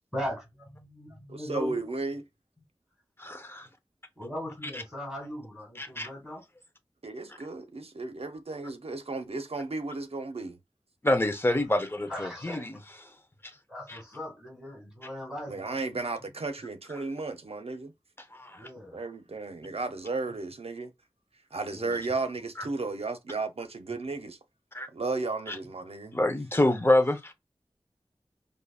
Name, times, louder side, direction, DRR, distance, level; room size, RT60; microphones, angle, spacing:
voice 1, 0.1-1.8 4.2-6.4 12.0-12.7 13.7-16.0 18.6-19.0 19.6-19.7 21.7-22.0, equal, 5° right, 2.3 m, -39 dB
voice 2, 1.3-2.2 7.0-10.6 15.5-17.9 18.9-20.9 21.5-24.4 24.9-26.1, right 3 dB, 80° right, 0.7 m, -34 dB
voice 3, 3.2-3.7 4.7-4.8 5.8-6.1 11.0-12.8 13.9-14.0 18.3-18.7 24.7-24.9 25.5-25.6 26.1-27.3, left 1 dB, 20° left, 0.8 m, -26 dB
5.0 x 2.7 x 2.4 m
wide cardioid pair, 55°, 10 cm